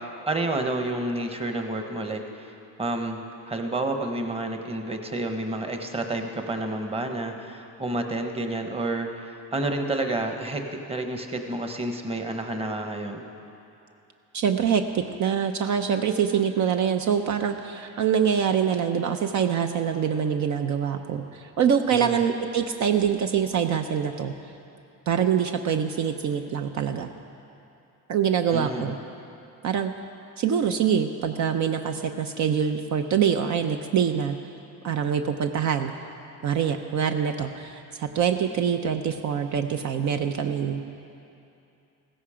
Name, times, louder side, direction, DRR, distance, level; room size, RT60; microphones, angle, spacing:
voice 1, 0.0-2.5 2.8-13.3 21.9-22.2 28.5-28.9, right 2 dB, 20° right, 5 dB, 1.1 m, -30 dB
voice 2, 14.3-24.3 25.1-27.1 28.1-29.0 29.6-29.9 30.4-34.4 34.8-35.9 36.4-40.8, right 8 dB, 60° right, 6 dB, 0.7 m, -25 dB
16.0 x 14.5 x 5.0 m, 2.7 s
cardioid pair, 125°, 32 cm